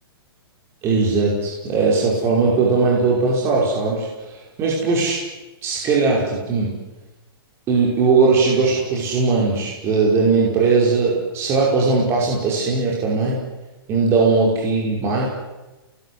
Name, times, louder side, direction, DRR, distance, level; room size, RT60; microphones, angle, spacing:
voice 1, 0.8-5.2 5.6-6.8 7.7-13.4 13.9-15.3, right 4 dB, 20° right, -3 dB, 5.4 m, -19 dB
29.0 x 20.5 x 9.8 m, 1.1 s
hypercardioid pair, 165°, 13 cm